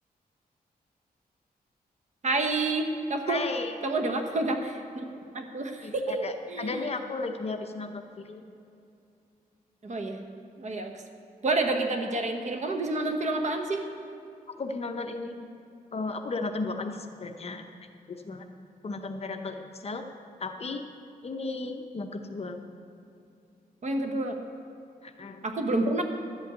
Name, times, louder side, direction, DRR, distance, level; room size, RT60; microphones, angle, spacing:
voice 1, 2.2-3.4 3.8-5.1 5.3-6.8 9.8-10.2 10.6-10.9 11.4-13.8 23.8-24.4 25.4-26.0, right 2 dB, 50° right, 4 dB, 1.1 m, -29 dB
voice 2, 3.2-3.7 5.8-8.4 14.6-15.5 15.9-17.6 18.1-18.4 18.8-20.0 20.4-20.8 21.2-22.6 25.0-25.4, left 3 dB, 40° left, 6 dB, 0.7 m, -34 dB
12.0 x 5.5 x 8.2 m, 2.6 s
wide cardioid pair, 120°, 16 cm